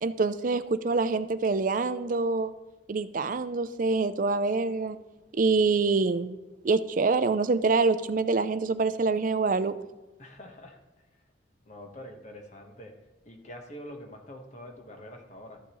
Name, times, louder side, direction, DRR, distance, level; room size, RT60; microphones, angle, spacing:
voice 1, 0.0-2.5 2.9-5.0 5.3-6.4 6.6-9.7, right 4 dB, 45° right, 12 dB, 0.5 m, -25 dB
voice 2, 10.2-10.8 11.6-12.9 13.2-15.6, left 1 dB, 40° left, 3 dB, 1.2 m, -45 dB
13.0 x 7.1 x 3.1 m, 1.2 s
head